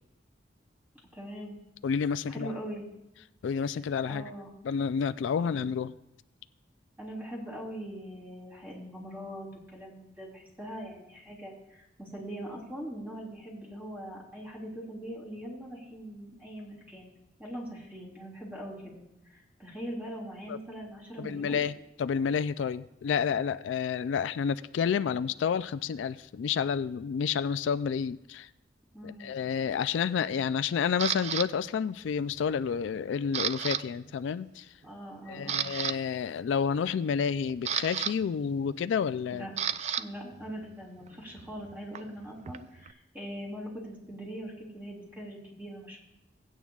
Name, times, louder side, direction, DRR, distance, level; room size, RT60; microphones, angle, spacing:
voice 1, 1.1-1.5 2.3-2.8 4.0-4.5 5.4-5.6 7.0-17.1 17.4-21.6 28.9-29.3 34.8-35.6 39.3-39.5 40.0-46.0, equal, 10° right, -3 dB, 3.2 m, -42 dB
voice 2, 1.8-2.5 3.4-4.3 4.6-5.9 20.5-20.6 21.2-28.5 29.0-34.7 35.3-39.5, left 6 dB, 80° left, 13 dB, 0.3 m, -30 dB
Camera, 31.0-31.5 32.1-32.4 32.7-33.8 34.1-34.3 34.8-34.9 35.3-36.0 37.1-40.0 40.3-42.9, right 9 dB, 35° right, 0.3 m, -33 dB
17.0 x 9.1 x 2.4 m, 0.89 s
head